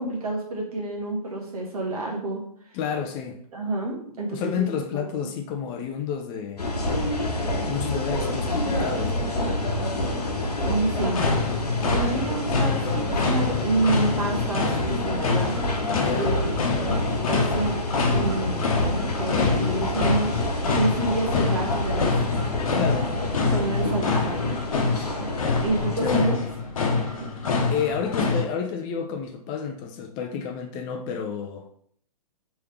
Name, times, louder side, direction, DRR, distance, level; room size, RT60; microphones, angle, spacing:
voice 1, 0.0-2.4 3.5-4.7 10.6-15.6 16.1-17.0 17.3-17.8 18.1-20.3 20.7-22.1 23.5-25.3 25.6-26.3 27.2-27.3, right 2 dB, 70° right, 1.4 m, -29 dB
voice 2, 2.7-3.4 4.3-6.6 7.7-9.3 16.0-16.3 22.7-23.2 26.0-26.3 27.7-31.7, left 7 dB, 25° left, 0.4 m, -30 dB
sound 1, 6.6-26.2, left 1 dB, 85° left, 0.9 m, -27 dB
sound 2, 11.0-28.4, left 4 dB, 60° left, 0.9 m, -27 dB
3.5 x 3.2 x 3.1 m
hypercardioid pair, 120°, 20 cm